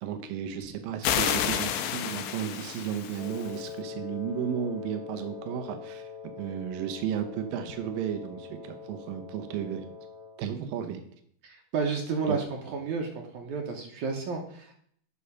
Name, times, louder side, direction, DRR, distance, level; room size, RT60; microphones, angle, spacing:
voice 1, 0.0-6.1 6.4-9.9 10.4-11.0 12.3-12.4, right 9 dB, 85° right, 7 dB, 2.6 m, -34 dB
sound 1, 1.0-3.6, left 10 dB, 80° left, 2.1 m, -30 dB
Wind instrument woodwind instrument, 3.2-10.5, left 6 dB, 30° right, 1.6 m, -43 dB
voice 2, 11.4-14.7, right 5 dB, 70° right, 2 dB, 2.2 m, -31 dB
8.4 x 5.7 x 5.6 m, 0.64 s
omnidirectional pair, 3.9 m